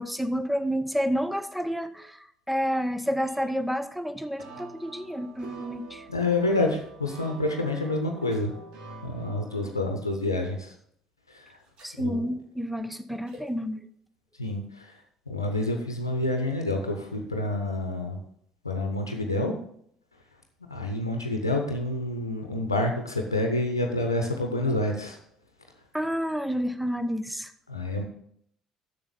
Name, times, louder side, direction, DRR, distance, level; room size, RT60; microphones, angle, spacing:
voice 1, 0.0-6.1 11.8-13.8 25.9-27.5, equal, ahead, 11 dB, 0.8 m, -29 dB
sound 1, 3.2-7.7 8.2-8.4 10.1-10.3 11.6-12.0 13.2-13.5, equal, 50° right, 3.5 m, -52 dB
sound 2, 4.4-9.7, right 3 dB, 65° right, 2.0 m, -46 dB
voice 2, 6.1-8.5 9.0-10.7 11.3-11.6 12.0-12.2 14.4-15.0 15.3-18.2 18.6-19.5 20.7-25.2 27.7-28.0, left 2 dB, 90° left, 3 dB, 0.7 m, -28 dB
7.0 x 6.6 x 6.8 m, 0.67 s
figure-of-eight pair, 55°, 2 cm